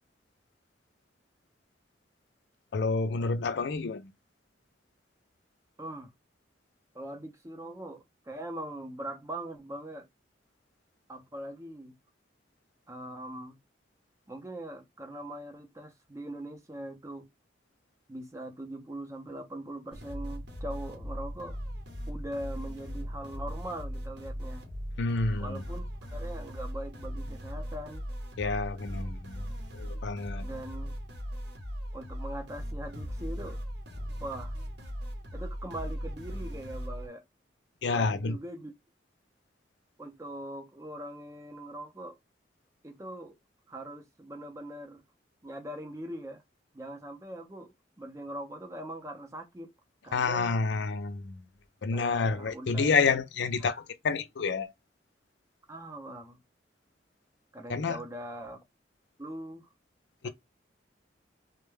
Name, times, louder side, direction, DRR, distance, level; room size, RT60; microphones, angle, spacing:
voice 1, 2.7-4.1 25.0-25.6 28.4-29.4 29.7-30.5 37.8-38.4 50.1-51.4 51.8-54.7 57.7-58.0 60.2-60.3, left 4 dB, 70° left, 0.4 m, -29 dB
voice 2, 5.8-6.1 6.9-10.1 11.1-12.0 12.9-13.6 14.3-17.3 18.1-21.6 22.1-24.6 25.4-28.0 30.4-30.9 31.9-33.6 34.2-34.5 35.3-37.2 37.9-38.7 40.0-42.2 42.8-43.3 43.7-45.0 45.4-46.4 46.7-47.7 48.0-49.7 50.0-50.6 51.9-53.0 55.7-56.4 57.5-58.6 59.2-59.7 60.2-60.3, right 1 dB, 15° right, 0.5 m, -41 dB
sound 1, 19.9-37.1, equal, 65° right, 0.8 m, -38 dB
2.2 x 2.1 x 3.1 m
head